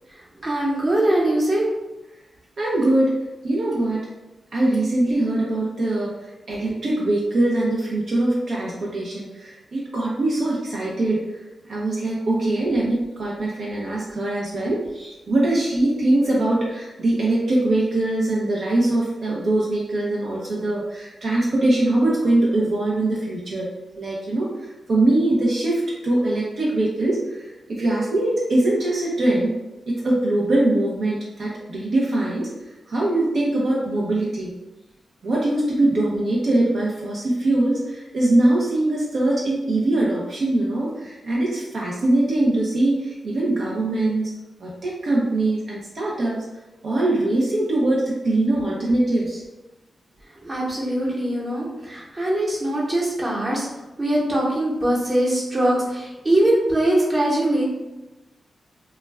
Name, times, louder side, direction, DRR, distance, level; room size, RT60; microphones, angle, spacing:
voice 1, 0.4-1.7 6.5-6.7 50.4-53.7 54.0-57.6, right 1 dB, 35° right, -4 dB, 0.9 m, -22 dB
voice 2, 2.6-3.2 3.4-4.0 4.5-6.1 6.5-11.2 11.7-23.7 24.0-29.5 29.9-32.5 32.9-34.5 35.2-44.3 44.6-46.4 46.8-49.4, right 2 dB, 70° right, -5 dB, 0.5 m, -22 dB
2.3 x 2.1 x 3.2 m, 1.0 s
cardioid pair, 75°, 0 cm